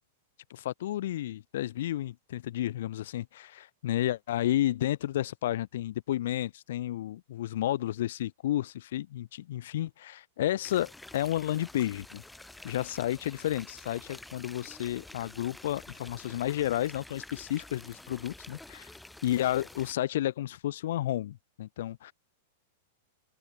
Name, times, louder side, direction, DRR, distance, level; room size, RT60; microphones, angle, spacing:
voice 1, 0.5-12.2 12.6-18.9 19.2-22.1, left 13 dB, 70° left, 0.6 m, -31 dB
sound 1, 10.6-19.9, left 2 dB, 5° left, 0.9 m, -49 dB
open air
hypercardioid pair, 120°, 0 cm